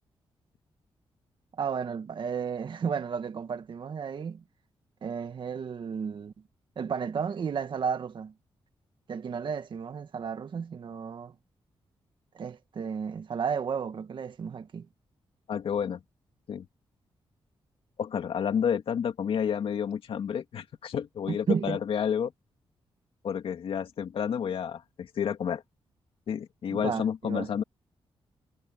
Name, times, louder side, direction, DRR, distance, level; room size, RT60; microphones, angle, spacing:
voice 1, 1.6-4.4 5.0-6.3 6.8-8.3 9.1-11.4 12.3-14.9 21.3-21.8 26.7-27.5, right 6 dB, 55° right, 1.8 m, -33 dB
voice 2, 15.5-16.0 16.5-16.7 18.0-22.3 23.2-25.6 26.3-27.6, left 8 dB, 75° left, 2.5 m, -30 dB
wide cardioid pair, 115°, 10 cm